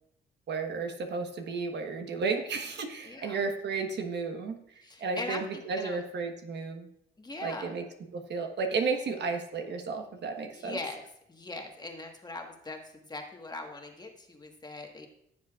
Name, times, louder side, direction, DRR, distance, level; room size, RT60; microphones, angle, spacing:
voice 1, 0.5-6.9 7.4-7.8 8.1-10.8, right 4 dB, 60° right, 5 dB, 1.3 m, -33 dB
voice 2, 3.0-3.4 4.8-6.0 7.2-7.7 10.5-11.0 11.3-15.1, left 2 dB, 20° left, 2 dB, 1.5 m, -41 dB
15.5 x 7.0 x 2.4 m, 0.75 s
cardioid pair, 90°, 20 cm